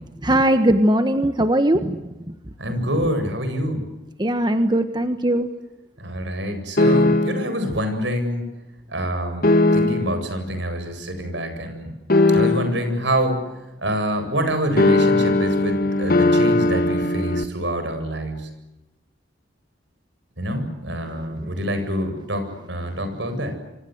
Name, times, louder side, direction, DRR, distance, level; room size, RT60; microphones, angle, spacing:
voice 1, 0.2-2.0 2.3-2.4 4.2-5.5 21.4-21.5, right 1 dB, 25° right, 8 dB, 1.4 m, -19 dB
voice 2, 2.6-3.8 6.0-8.4 8.9-11.9 12.3-13.4 13.8-18.5 20.4-23.5, equal, 70° right, 7 dB, 7.9 m, -26 dB
sound 1, 6.8-7.6 9.4-10.2 12.1-12.9 14.8-17.4, left 2 dB, 50° left, 1.8 m, -18 dB
28.5 x 25.0 x 8.1 m, 0.96 s
head